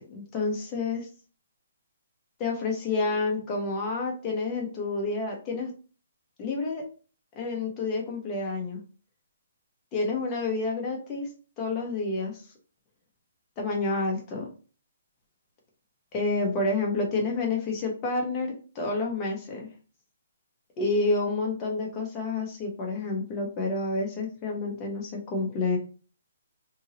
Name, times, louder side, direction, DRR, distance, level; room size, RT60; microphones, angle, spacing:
voice 1, 0.1-1.1 2.4-5.7 6.4-6.8 7.3-8.8 9.9-11.3 11.6-12.4 13.6-14.5 16.1-19.7 20.8-25.8, left 3 dB, 20° left, 0 dB, 0.9 m, -29 dB
2.8 x 2.7 x 2.8 m, 0.36 s
hypercardioid pair, 165°, 0 cm